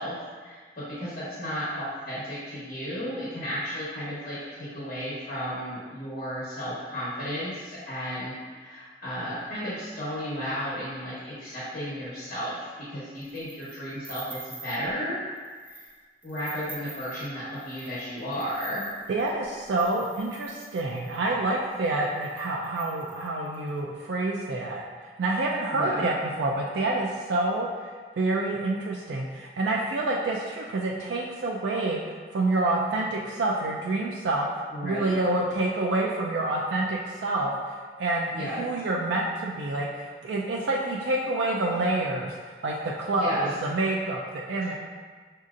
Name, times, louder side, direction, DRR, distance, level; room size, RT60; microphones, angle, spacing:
voice 1, 0.0-15.2 15.7-15.9 16.2-18.8 25.7-26.1 34.7-35.2 38.3-38.6 43.1-43.5, equal, 45° left, -10 dB, 1.1 m, -34 dB
sound 1, 13.2-14.9 15.4-15.9 16.2-21.3 21.9-22.0 22.2-23.7, right 3 dB, 10° right, 0.3 m, -47 dB
voice 2, 19.1-34.5 34.8-44.7, right 2 dB, 85° right, -2 dB, 0.4 m, -28 dB
6.2 x 2.7 x 2.5 m, 1.5 s
head